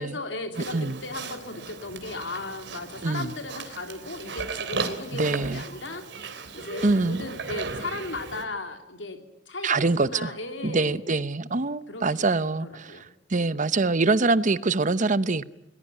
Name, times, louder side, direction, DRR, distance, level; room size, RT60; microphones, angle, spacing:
voice 1, 0.0-9.2 9.5-11.0 11.9-12.4 12.6-13.1, left 2 dB, 85° left, 3.2 m, -36 dB
Livestock farm animals working animals, 0.5-8.4, right 4 dB, 65° right, 3.3 m, -36 dB
voice 2, 3.0-3.3 5.1-5.6 6.8-7.2 9.6-10.3 10.6-15.4, right 3 dB, 45° right, 0.8 m, -24 dB
22.0 x 20.0 x 9.9 m
head